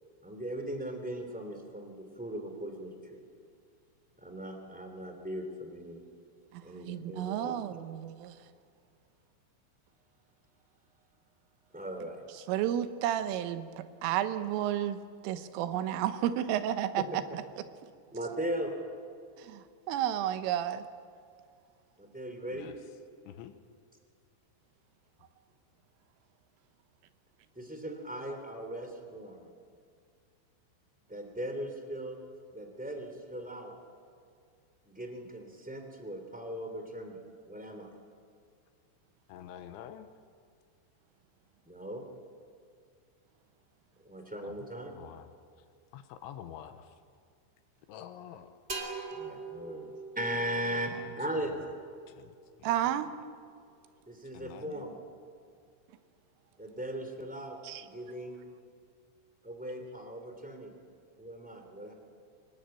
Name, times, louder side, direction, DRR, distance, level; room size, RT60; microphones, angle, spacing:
voice 1, 0.2-3.2 4.2-6.0 6.6-7.6 11.7-12.2 17.0-17.1 18.1-18.7 22.0-22.7 27.5-29.5 31.1-32.2 32.5-33.7 34.8-37.2 37.4-37.9 41.6-42.0 44.0-44.9 49.1-51.5 54.1-55.0 56.6-58.4 59.4-60.7 61.2-61.9, right 1 dB, 5° right, 4 dB, 1.3 m, -38 dB
voice 2, 6.5-8.5 12.5-17.4 19.4-20.9 52.6-53.1 57.6-57.9, right 11 dB, 80° right, 11 dB, 3.5 m, -32 dB
voice 3, 39.3-40.1 44.4-44.5 45.0-45.3 45.9-46.9 47.9-48.5 50.9-51.1 52.2-52.3 54.3-54.8, left 10 dB, 75° left, 9 dB, 3.2 m, -47 dB
sound 1, 48.7-52.3, right 3 dB, 20° right, 1.8 m, -43 dB
24.5 x 20.5 x 9.0 m, 2.3 s
omnidirectional pair, 5.8 m